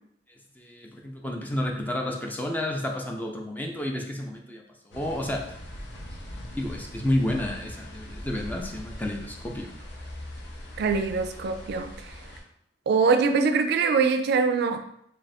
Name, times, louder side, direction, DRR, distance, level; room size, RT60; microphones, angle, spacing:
voice 1, 0.6-4.6 4.9-5.4 6.5-9.7, left 1 dB, 10° left, 1 dB, 0.4 m, -30 dB
sound 1, 4.9-12.4, left 1 dB, 65° left, 0.8 m, -41 dB
voice 2, 10.8-12.1 12.9-14.8, right 5 dB, 65° right, 7 dB, 0.3 m, -23 dB
3.3 x 2.4 x 4.1 m, 0.73 s
head